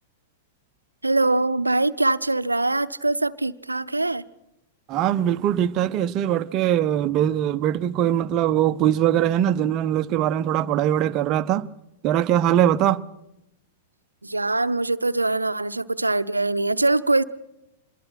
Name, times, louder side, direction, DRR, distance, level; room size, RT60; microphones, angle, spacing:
voice 1, 1.0-4.2 14.2-17.2, right 2 dB, 85° right, 0.8 m, -23 dB
voice 2, 4.9-11.7 12.0-13.0, right 11 dB, 35° right, 0.9 m, -21 dB
26.0 x 21.5 x 5.9 m
figure-of-eight pair, 100°, 0 cm